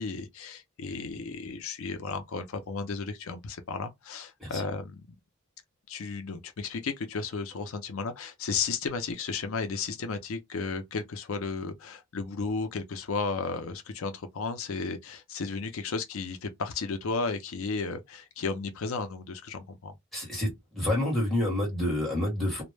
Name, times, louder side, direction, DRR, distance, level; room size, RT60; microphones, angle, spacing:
voice 1, 0.0-5.0 5.9-19.9, left 4 dB, 75° left, 0.5 m, -34 dB
voice 2, 20.1-22.6, left 1 dB, ahead, 1.1 m, -28 dB
2.1 x 2.0 x 3.1 m
head